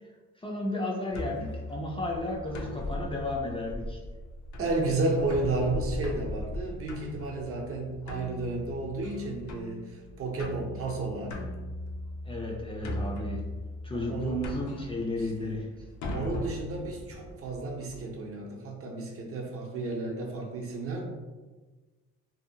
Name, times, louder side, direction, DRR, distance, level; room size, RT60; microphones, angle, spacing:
voice 1, 0.4-4.0 12.2-13.4 13.8-15.7, left 1 dB, 20° left, -2 dB, 0.4 m, -33 dB
sound 1, 1.1-18.0, left 1 dB, 70° left, 0.5 m, -39 dB
voice 2, 4.6-11.4 13.9-14.5 15.2-15.6 16.1-21.0, right 2 dB, 50° right, 0 dB, 0.6 m, -32 dB
2.7 x 2.1 x 2.7 m, 1.3 s
cardioid pair, 90°, 30 cm